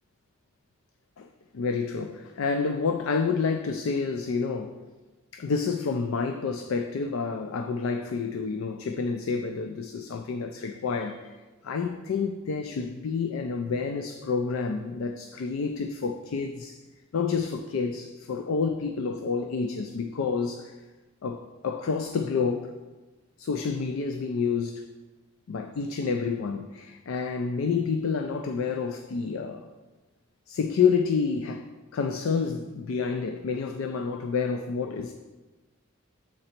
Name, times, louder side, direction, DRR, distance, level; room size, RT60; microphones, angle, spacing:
voice 1, 1.5-4.8 5.3-11.3 11.6-16.8 17.1-20.7 21.2-22.7 23.4-24.8 25.5-29.7 30.5-31.6 31.9-35.1, left 5 dB, 75° left, 6 dB, 0.4 m, -29 dB
7.7 x 4.0 x 4.3 m, 1.2 s
head